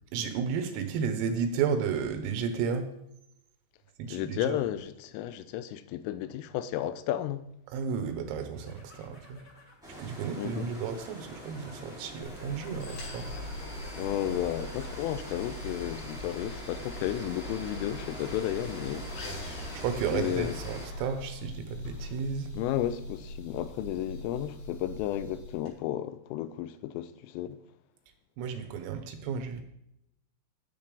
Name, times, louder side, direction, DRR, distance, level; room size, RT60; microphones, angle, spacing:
voice 1, 0.1-2.9 4.0-4.6 7.7-9.4 10.0-13.3 19.7-22.5 28.4-29.6, right 6 dB, 85° right, 3.7 m, -33 dB
voice 2, 4.1-7.5 10.4-10.7 14.0-19.1 20.1-20.5 22.6-27.6, left 12 dB, 85° left, 3.1 m, -33 dB
sound 1, 8.4-15.1 15.5-16.0, left 2 dB, 35° left, 1.1 m, -53 dB
sound 2, 9.8-20.9, right 1 dB, ahead, 1.1 m, -45 dB
sound 3, 12.2-25.7, left 1 dB, 65° left, 4.9 m, -41 dB
10.5 x 9.5 x 3.4 m
omnidirectional pair, 5.9 m